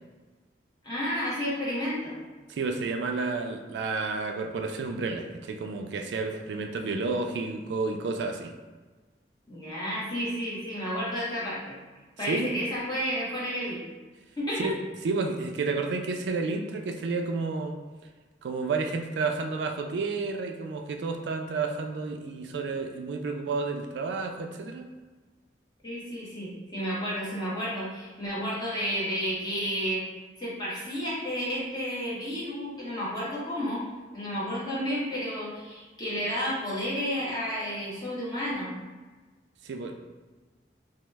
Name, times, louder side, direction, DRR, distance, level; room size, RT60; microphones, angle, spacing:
voice 1, 0.8-2.2 9.5-11.8 12.2-13.8 14.4-14.7 25.8-30.0 30.4-33.8 34.1-38.7, equal, 25° left, -8 dB, 0.9 m, -31 dB
voice 2, 2.5-8.5 12.2-12.5 14.6-14.8 15.0-17.7 18.4-24.9 39.6-40.0, right 4 dB, 80° right, 4 dB, 0.3 m, -31 dB
3.0 x 2.0 x 3.3 m, 1.3 s
head